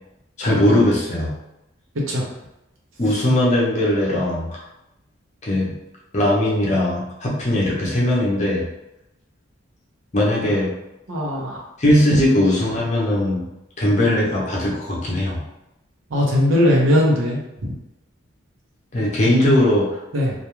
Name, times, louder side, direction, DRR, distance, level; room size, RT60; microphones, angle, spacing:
voice 1, 0.4-1.3 3.0-4.6 5.4-5.7 6.1-8.6 10.1-10.7 11.8-13.4 13.8-15.4 18.9-20.0, left 1 dB, 35° left, -4 dB, 0.6 m, -19 dB
voice 2, 11.1-11.6 16.1-17.4 20.1-20.3, left 1 dB, 85° right, -2 dB, 0.7 m, -18 dB
2.4 x 2.2 x 3.0 m, 0.90 s
head